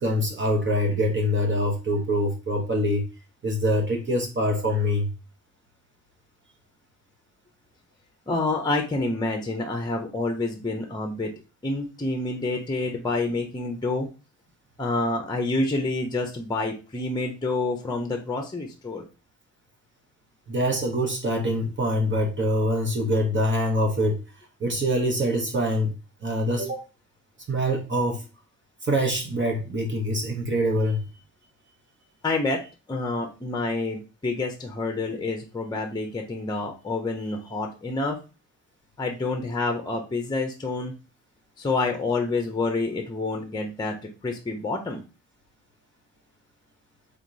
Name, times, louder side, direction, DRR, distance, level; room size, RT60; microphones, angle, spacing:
voice 1, 0.0-3.1 3.4-5.1 20.5-24.2 24.6-25.9 26.2-26.8 27.5-28.2 28.8-31.0, equal, 40° right, 2 dB, 1.2 m, -24 dB
voice 2, 8.3-11.3 11.6-14.1 14.8-19.0 32.2-32.6 32.9-38.2 39.0-40.9 41.6-43.9 44.2-45.0, left 2 dB, 15° left, 4 dB, 0.8 m, -28 dB
3.8 x 2.9 x 4.0 m, 0.31 s
cardioid pair, 90°, 30 cm